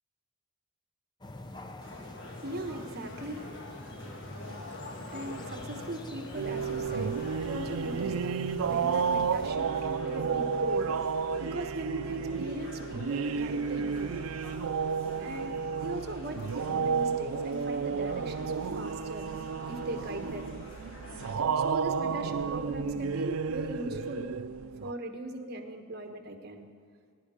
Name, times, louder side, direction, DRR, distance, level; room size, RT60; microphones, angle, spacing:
sound 1, 1.2-9.5, left 2 dB, 20° left, 0.6 m, -46 dB
sound 2, 1.8-21.3, left 1 dB, 60° left, 1.8 m, -46 dB
voice 1, 2.3-14.2 15.2-19.4 19.7-20.5 21.6-24.3 24.8-26.7, right 1 dB, 45° right, 4 dB, 1.3 m, -39 dB
sound 3, 6.3-24.9, right 6 dB, 80° right, 0.4 m, -32 dB
20.5 x 11.0 x 5.0 m, 2.2 s
head